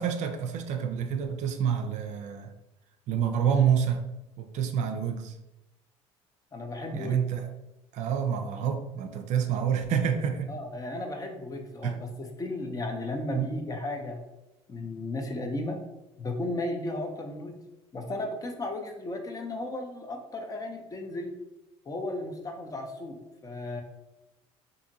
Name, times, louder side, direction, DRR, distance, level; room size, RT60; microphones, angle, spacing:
voice 1, 0.0-2.5 3.1-4.0 4.4-5.4 6.9-7.5 7.9-10.5 11.8-12.0 13.3-13.5, right 8 dB, 60° right, 6 dB, 0.4 m, -28 dB
voice 2, 6.5-7.2 10.5-14.2 14.7-15.8 16.2-17.6 17.9-21.3 21.9-23.8, left 2 dB, 25° left, 4 dB, 0.5 m, -35 dB
2.7 x 2.6 x 2.6 m, 0.93 s
supercardioid pair, 75°, 14 cm